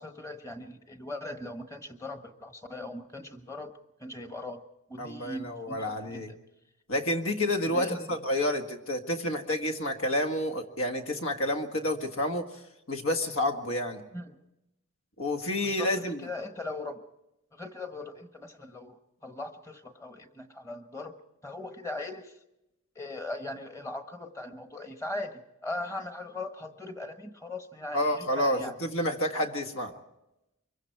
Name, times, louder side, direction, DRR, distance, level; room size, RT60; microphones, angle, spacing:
voice 1, 0.0-4.6 4.9-6.4 7.7-8.2 14.1-14.4 15.6-17.0 17.5-21.2 21.4-22.4 22.9-28.7, left 2 dB, 15° left, 7 dB, 1.2 m, -39 dB
voice 2, 5.0-6.3 6.9-12.5 12.9-14.0 15.2-16.2 27.9-30.0, left 1 dB, 75° left, 5 dB, 1.7 m, -29 dB
24.5 x 22.5 x 4.6 m, 0.91 s
head